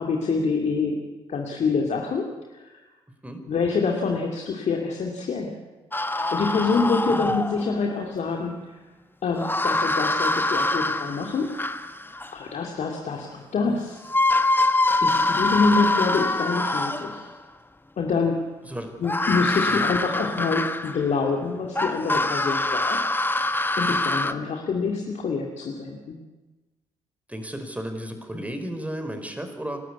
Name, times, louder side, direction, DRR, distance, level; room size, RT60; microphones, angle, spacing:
voice 1, 0.0-2.8 3.5-5.6 6.1-8.8 9.2-11.5 12.3-14.0 15.0-17.3 18.0-18.4 19.0-23.0 23.3-26.2, left 4 dB, 55° left, 1 dB, 2.6 m, -26 dB
sound 1, 5.9-7.8 9.4-12.3 13.7-13.8 14.1-17.3 19.0-21.2 21.8-24.3, left 2 dB, 15° left, 1.5 m, -24 dB
voice 2, 7.1-7.4 18.6-18.9 19.7-19.9 27.3-29.8, right 1 dB, 10° right, 6 dB, 4.9 m, -34 dB
29.0 x 12.5 x 8.4 m, 1.2 s
hypercardioid pair, 45°, 14 cm